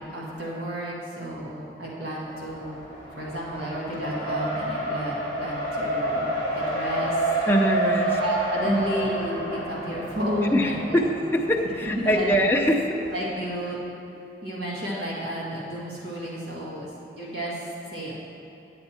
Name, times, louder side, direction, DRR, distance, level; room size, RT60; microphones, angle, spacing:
voice 1, 0.1-2.8 3.2-6.3 6.5-7.3 8.2-11.0 11.8-12.3 13.1-13.8 14.4-16.9 17.2-18.1, equal, 65° right, -5 dB, 1.9 m, -31 dB
Race car auto racing, 2.2-13.2, right 1 dB, 85° right, 2.4 m, -30 dB
voice 2, 7.5-8.2 8.6-8.9 10.5-13.0, equal, 15° left, 0 dB, 0.6 m, -23 dB
10.0 x 7.9 x 4.3 m, 2.9 s
head